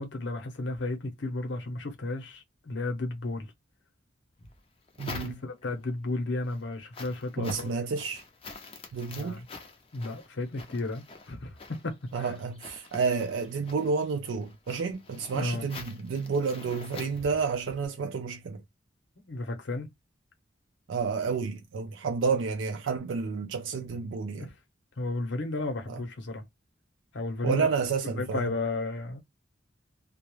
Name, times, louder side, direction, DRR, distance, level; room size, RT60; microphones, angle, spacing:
voice 1, 0.0-3.5 5.2-7.7 9.2-9.5 9.9-12.3 15.3-15.7 19.2-19.9 24.3-24.5 25.0-26.4 27.1-27.7 28.0-29.2, left 2 dB, 70° left, 0.7 m, -33 dB
sound 1, 4.4-5.8 6.3-17.9, left 3 dB, 30° left, 0.5 m, -46 dB
voice 2, 5.0-5.4 7.4-8.2 8.9-9.4 12.1-18.6 20.9-24.5 25.9-26.0 27.4-28.5, right 5 dB, 80° right, 0.4 m, -30 dB
2.3 x 2.0 x 2.9 m
head